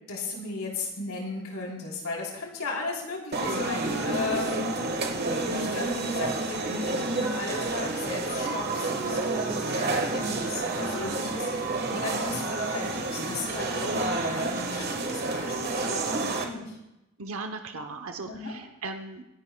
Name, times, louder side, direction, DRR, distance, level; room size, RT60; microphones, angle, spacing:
voice 1, 0.1-4.7 5.2-11.5 11.9-16.8 18.2-18.5, left 3 dB, 80° left, -1 dB, 3.5 m, -35 dB
sound 1, 3.3-16.4, right 3 dB, 45° right, 1.4 m, -29 dB
voice 2, 5.5-5.9 17.2-19.2, right 3 dB, 70° right, 5 dB, 0.8 m, -38 dB
25.0 x 11.0 x 2.2 m, 0.91 s
head